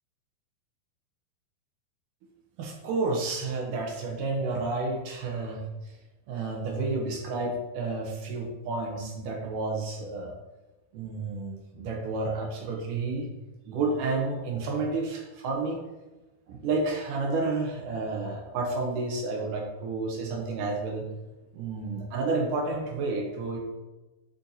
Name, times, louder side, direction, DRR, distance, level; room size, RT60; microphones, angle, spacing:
voice 1, 2.6-5.9 6.3-10.3 10.9-13.3 13.7-15.8 16.5-21.0 21.5-23.6, right 3 dB, 75° right, 0 dB, 2.0 m, -30 dB
10.5 x 4.3 x 2.7 m, 1.1 s
omnidirectional pair, 4.6 m